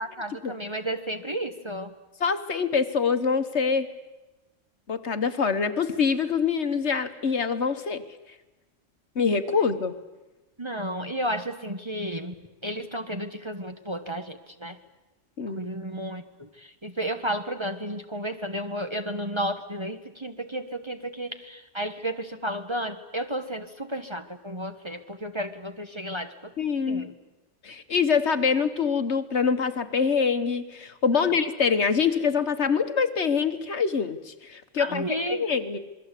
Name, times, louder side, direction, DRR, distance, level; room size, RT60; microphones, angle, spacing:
voice 1, 0.0-1.9 10.6-12.3 12.6-14.8 15.6-26.5 26.9-27.1 31.2-31.3 34.8-35.4, right 1 dB, 20° right, 5 dB, 1.2 m, -32 dB
voice 2, 2.2-3.9 4.9-8.0 9.1-10.0 15.4-15.6 26.6-27.1 27.6-35.8, left 5 dB, 55° left, 9 dB, 1.5 m, -25 dB
27.0 x 22.0 x 8.3 m, 1.1 s
omnidirectional pair, 1.4 m